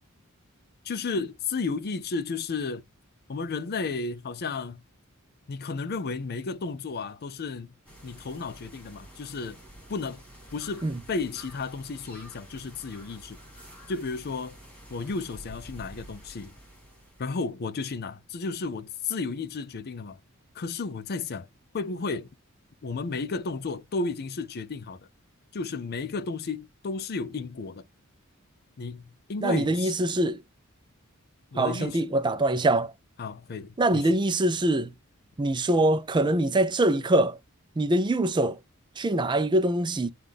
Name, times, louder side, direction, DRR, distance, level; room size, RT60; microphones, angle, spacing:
voice 1, 0.8-2.8 3.3-4.8 5.5-7.7 8.0-9.6 9.9-10.2 10.5-13.4 13.9-14.6 14.9-16.5 17.2-20.2 20.5-21.5 21.7-22.3 22.8-25.1 25.5-27.9 28.8-29.9 31.5-32.1 33.2-34.1, left 4 dB, 50° left, 0.5 m, -33 dB
sound 1, 7.9-17.5, equal, 5° left, 3.0 m, -49 dB
voice 2, 29.4-30.4 31.6-32.9 33.8-34.9 35.4-37.4 37.8-38.6 39.0-40.1, right 1 dB, 20° right, 0.4 m, -24 dB
5.8 x 2.4 x 3.4 m
head